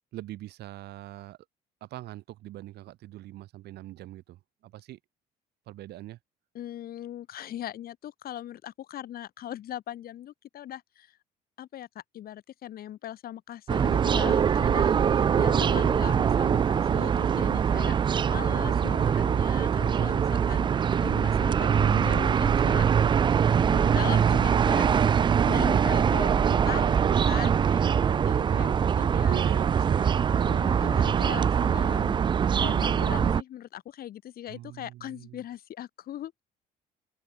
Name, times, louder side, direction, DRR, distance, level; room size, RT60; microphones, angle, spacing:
voice 1, 0.1-1.4 1.8-5.0 5.7-6.2 14.6-16.1 28.2-30.3 34.5-35.4, right 15 dB, 75° right, 6.0 m, -42 dB
voice 2, 6.5-11.2 11.6-14.9 15.4-17.9 18.3-22.8 23.6-25.1 25.4-29.4 30.3-32.2 32.6-36.3, left 12 dB, 60° left, 3.9 m, -40 dB
sound 1, 13.7-33.4, right 7 dB, 30° right, 0.4 m, -23 dB
open air
cardioid pair, 110°, 17 cm